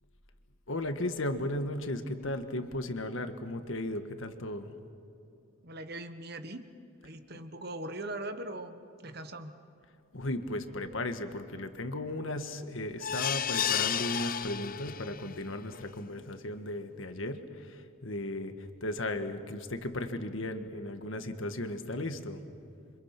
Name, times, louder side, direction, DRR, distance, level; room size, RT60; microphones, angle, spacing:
voice 1, 0.7-4.7 10.1-22.4, left 1 dB, 70° left, 8 dB, 1.6 m, -36 dB
voice 2, 5.6-6.7 7.0-9.5, right 1 dB, 50° right, 9 dB, 1.4 m, -40 dB
sound 1, 13.0-15.3 15.7-15.8 16.2-16.3, left 9 dB, 40° left, 0.5 m, -32 dB
28.0 x 26.0 x 6.0 m, 2.7 s
head